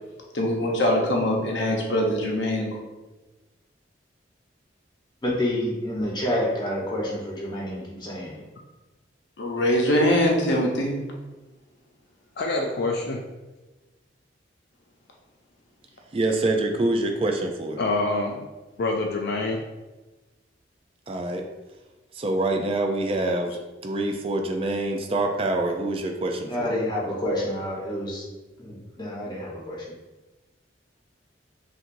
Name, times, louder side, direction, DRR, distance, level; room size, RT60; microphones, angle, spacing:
voice 1, 0.3-2.8 9.4-11.0, equal, 80° left, 0 dB, 0.8 m, -23 dB
voice 2, 5.2-8.4 26.5-28.2 28.6-29.8, left 1 dB, 25° left, -5 dB, 1.0 m, -28 dB
voice 3, 12.4-13.2 17.8-18.5 18.8-19.6, left 2 dB, 60° left, 1 dB, 0.4 m, -26 dB
voice 4, 16.1-17.8 21.1-21.4 22.1-23.5 23.8-26.7, right 2 dB, 30° right, 4 dB, 0.4 m, -25 dB
5.8 x 2.5 x 2.6 m, 1.1 s
head